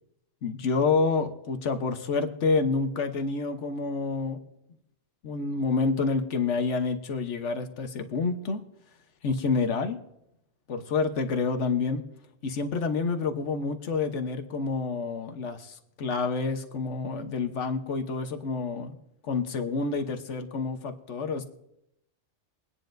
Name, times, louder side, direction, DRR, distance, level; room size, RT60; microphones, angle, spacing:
voice 1, 0.4-4.4 5.2-8.6 9.2-10.0 10.7-12.0 12.4-19.0 19.2-21.4, left 4 dB, 80° left, 7 dB, 1.3 m, -28 dB
23.0 x 9.7 x 2.6 m, 0.81 s
omnidirectional pair, 1.2 m